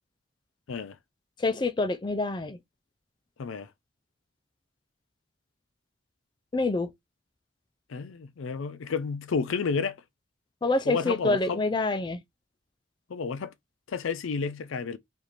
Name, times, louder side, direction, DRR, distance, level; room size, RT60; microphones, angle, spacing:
voice 1, 1.4-2.6 6.5-6.9 10.6-12.2, left 3 dB, 25° left, 0.3 m, -26 dB
voice 2, 7.9-10.0 10.9-11.6 13.1-13.5 13.9-15.0, left 5 dB, 85° left, 0.4 m, -31 dB
4.9 x 2.5 x 2.9 m
head